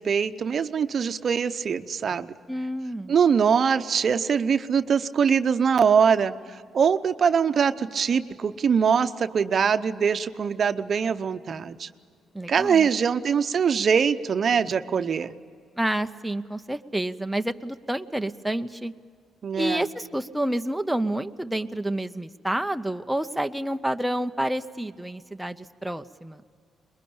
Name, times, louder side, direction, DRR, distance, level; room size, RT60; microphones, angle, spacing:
voice 1, 0.0-2.4 3.1-11.9 12.5-15.3 19.4-19.9, right 6 dB, 50° right, 10 dB, 0.8 m, -23 dB
voice 2, 2.5-3.1 12.3-12.9 15.8-18.9 19.6-26.4, right 1 dB, 5° right, 7 dB, 0.7 m, -29 dB
22.0 x 21.5 x 8.7 m, 2.1 s
cardioid pair, 90°, 0 cm